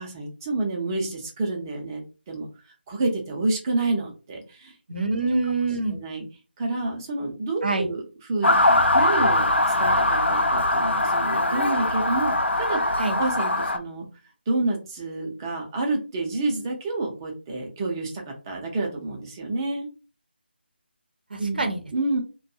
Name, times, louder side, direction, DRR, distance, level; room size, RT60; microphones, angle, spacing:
voice 1, 0.0-2.5 2.9-4.7 5.9-6.2 6.6-8.0 8.3-9.5 9.8-14.1 14.5-19.9 21.4-21.6 21.9-22.2, right 2 dB, 20° right, 1 dB, 0.6 m, -29 dB
voice 2, 4.9-6.0 7.6-7.9 13.0-13.2 21.3-21.8, right 3 dB, 55° right, 5 dB, 0.7 m, -25 dB
Motor vehicle (road) / Siren, 8.4-13.8, left 2 dB, 85° left, 0.5 m, -21 dB
2.5 x 2.3 x 2.7 m, 0.32 s
figure-of-eight pair, 160°, 6 cm